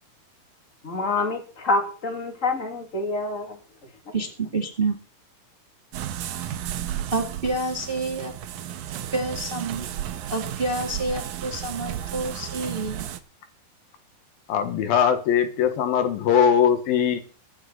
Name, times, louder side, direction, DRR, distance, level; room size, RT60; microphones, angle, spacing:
voice 1, 0.8-3.6, left 3 dB, 25° left, 2.5 m, -26 dB
voice 2, 4.1-5.0 7.1-8.3 9.1-9.9 10.3-13.0, right 2 dB, 20° right, 1.7 m, -28 dB
sound 1, 5.9-13.2, right 11 dB, 70° right, 2.2 m, -33 dB
voice 3, 14.5-17.2, left 8 dB, 80° left, 3.4 m, -21 dB
23.0 x 8.1 x 4.1 m
omnidirectional pair, 4.2 m